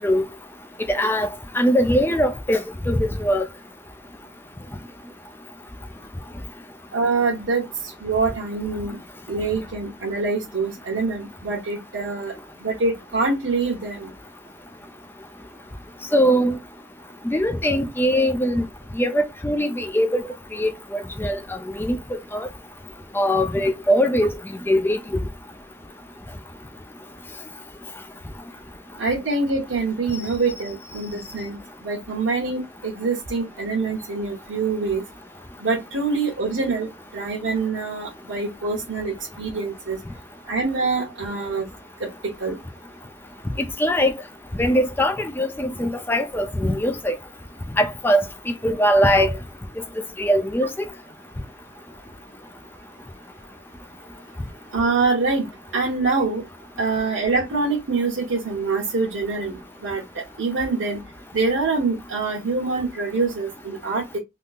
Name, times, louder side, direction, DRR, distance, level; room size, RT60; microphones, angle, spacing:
voice 1, 0.9-1.3 1.5-3.5 16.1-16.6 17.3-18.6 19.0-20.2 20.5-20.7 21.2-21.4 21.8-22.5 23.1-24.3 24.7-25.0 43.8-44.1 44.6-47.1 47.8-48.2 48.6-49.3 50.2-50.7, equal, 10° left, 0.4 m, -21 dB
voice 2, 6.9-9.0 9.3-12.3 12.6-14.1 29.0-35.0 35.6-36.9 37.1-40.0 40.5-41.7 42.0-42.1 42.4-42.6 54.7-56.4 56.8-61.0 61.3-64.2, right 3 dB, 80° right, 1.0 m, -25 dB
3.6 x 2.7 x 2.4 m
head